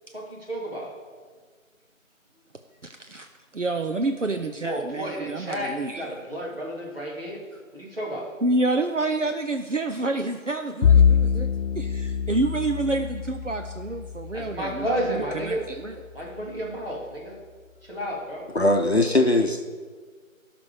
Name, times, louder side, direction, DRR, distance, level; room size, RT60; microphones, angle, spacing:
voice 1, 0.1-0.9 4.6-7.4 7.7-8.3 14.3-15.7 16.1-17.4 17.8-18.5, equal, 45° right, -4 dB, 3.0 m, -32 dB
voice 2, 2.8-6.1 8.4-11.5 11.8-16.0, right 2 dB, 65° right, 6 dB, 0.7 m, -28 dB
Bowed string instrument, 10.8-15.4, left 7 dB, 80° left, 0.5 m, -24 dB
voice 3, 18.5-19.7, left 1 dB, 50° left, 4 dB, 0.9 m, -20 dB
16.5 x 6.1 x 4.9 m, 1.5 s
figure-of-eight pair, 175°, 41 cm